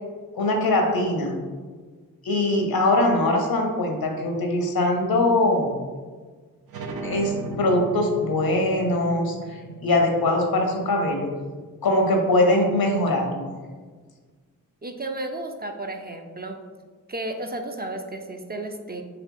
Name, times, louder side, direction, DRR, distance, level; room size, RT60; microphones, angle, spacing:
voice 1, 0.3-1.4 2.2-5.8 7.0-11.3 11.8-13.5, left 1 dB, 80° left, 2 dB, 0.8 m, -22 dB
sound 1, 6.7-12.0, right 2 dB, 80° right, 0.5 m, -37 dB
voice 2, 14.8-16.6 17.1-19.0, right 2 dB, 25° right, 4 dB, 0.4 m, -33 dB
3.9 x 2.8 x 3.6 m, 1.5 s
cardioid pair, 45°, 36 cm